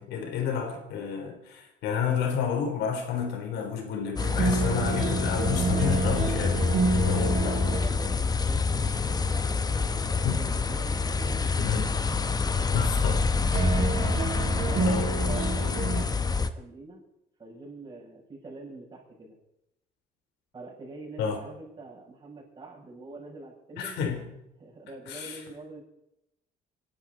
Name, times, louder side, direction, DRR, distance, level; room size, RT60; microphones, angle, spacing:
voice 1, 0.0-6.7 7.0-7.6 10.2-10.4 11.6-11.9 12.7-13.2 14.9-15.1 21.2-21.4 23.8-24.2 25.1-25.4, left 7 dB, 90° left, 5 dB, 3.7 m, -30 dB
sound 1, 4.2-16.5, left 4 dB, 25° left, 1.1 m, -27 dB
sound 2, 4.2-16.0, right 4 dB, 45° right, 4.1 m, -31 dB
voice 2, 7.0-11.7 14.5-17.0 17.4-19.4 20.5-24.0 24.6-25.8, right 3 dB, 25° right, -3 dB, 7.5 m, -45 dB
26.5 x 12.0 x 4.1 m, 0.83 s
cardioid pair, 110°, 17 cm